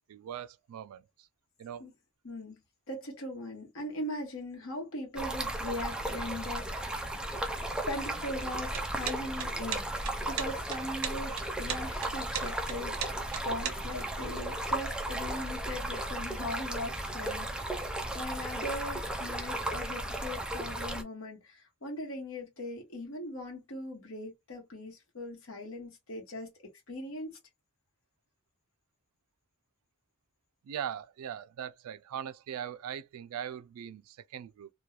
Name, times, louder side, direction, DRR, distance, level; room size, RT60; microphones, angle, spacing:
voice 1, 0.1-1.3 1.6-1.9 30.6-34.7, right 9 dB, 85° right, 0.3 m, -40 dB
voice 2, 2.2-2.6 2.9-7.0 7.8-13.0 13.4-26.5 26.9-27.4, left 1 dB, 65° left, 1.0 m, -40 dB
Stream, 5.2-21.0, right 1 dB, 5° right, 0.3 m, -35 dB
sound 1, 8.7-14.0, right 8 dB, 70° right, 0.7 m, -37 dB
3.0 x 2.2 x 2.3 m
head